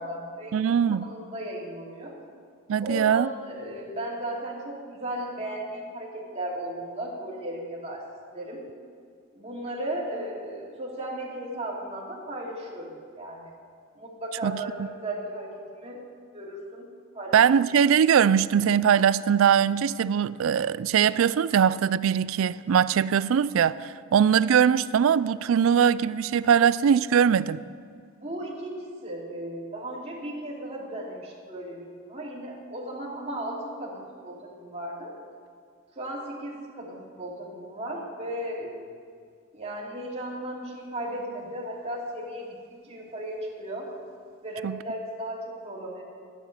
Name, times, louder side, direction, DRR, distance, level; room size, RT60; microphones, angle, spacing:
voice 1, 0.0-2.2 2.8-8.0 8.3-8.6 9.3-13.5 14.0-16.0 16.3-16.9 17.1-17.4 28.2-35.1 36.0-38.9 39.5-42.6 42.8-43.9 44.4-46.0, right 1 dB, 30° right, 2.6 m, -36 dB
voice 2, 0.5-1.1 2.7-3.3 14.4-14.5 17.3-27.6 44.6-44.8, right 8 dB, 70° right, 0.3 m, -21 dB
12.5 x 9.8 x 6.6 m
head